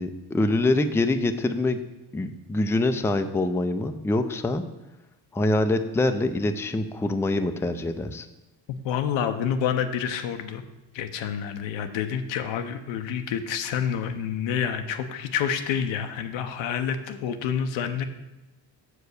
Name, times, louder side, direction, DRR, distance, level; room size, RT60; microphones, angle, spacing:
voice 1, 0.0-1.8 2.1-4.6 5.3-8.3, left 2 dB, 5° left, 8 dB, 0.5 m, -25 dB
voice 2, 8.8-10.6 10.9-18.1, left 8 dB, 80° left, 8 dB, 0.9 m, -28 dB
6.8 x 4.9 x 6.5 m, 1.0 s
cardioid pair, 85°, 44 cm